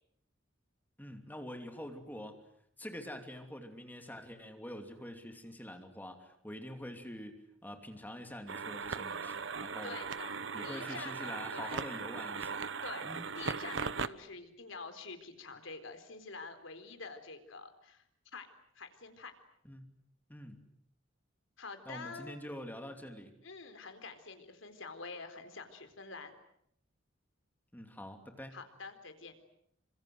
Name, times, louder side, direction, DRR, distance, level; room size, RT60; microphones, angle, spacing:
voice 1, 1.0-2.4 2.8-10.0 10.5-12.7 13.0-13.2 19.6-19.9 20.3-20.6 21.8-23.3 27.7-28.6, left 1 dB, 10° left, 5 dB, 2.8 m, -46 dB
sound 1, 8.5-14.1, right 5 dB, 70° right, 1.1 m, -38 dB
voice 2, 9.6-10.4 10.6-11.8 12.8-18.0 18.3-18.5 18.7-19.3 21.6-22.4 23.4-26.3 28.5-29.3, left 4 dB, 80° left, 8 dB, 4.1 m, -47 dB
28.5 x 26.0 x 7.9 m, 0.71 s
head